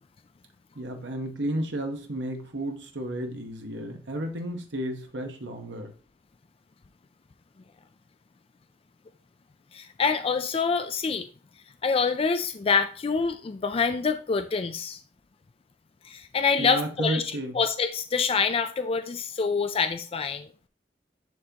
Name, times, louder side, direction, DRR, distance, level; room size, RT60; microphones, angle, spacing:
voice 1, 0.7-5.9 16.6-17.6, right 1 dB, 80° right, 4 dB, 1.2 m, -32 dB
voice 2, 9.7-11.3 11.8-15.0 16.0-17.2 17.5-20.5, left 5 dB, 35° left, 9 dB, 0.4 m, -26 dB
10.5 x 3.8 x 2.9 m, 0.39 s
head